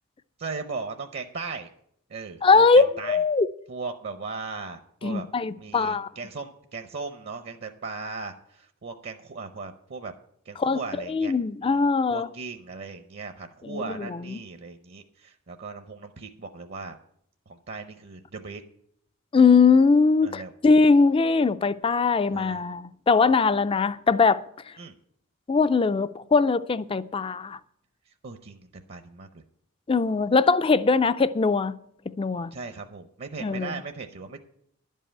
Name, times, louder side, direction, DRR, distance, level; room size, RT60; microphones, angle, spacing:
voice 1, 0.4-1.7 2.1-3.2 3.7-5.3 5.6-10.1 10.4-11.3 11.6-17.0 17.5-18.6 20.2-20.5 22.3-22.6 24.8-24.9 28.2-29.3 32.5-34.4, right 4 dB, 50° right, 0.7 m, -38 dB
voice 2, 2.4-3.5 5.0-6.1 10.6-10.8 11.1-12.3 13.6-14.4 19.3-24.4 25.5-27.6 29.9-31.7 32.2-32.5 33.4-33.8, left 4 dB, 25° left, 0.3 m, -21 dB
11.5 x 5.5 x 8.8 m
head